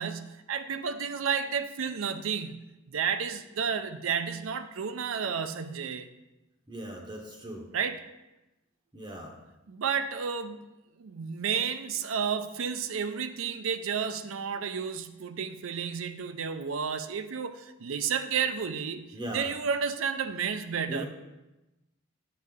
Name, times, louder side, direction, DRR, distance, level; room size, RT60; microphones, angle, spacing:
voice 1, 0.0-6.1 7.7-8.0 9.7-10.6 11.0-21.0, right 6 dB, 70° right, 11 dB, 0.5 m, -31 dB
voice 2, 6.7-7.7 8.9-9.3 19.1-19.5 20.9-21.0, right 1 dB, 20° right, 0 dB, 0.8 m, -38 dB
7.7 x 6.5 x 3.5 m, 1.0 s
head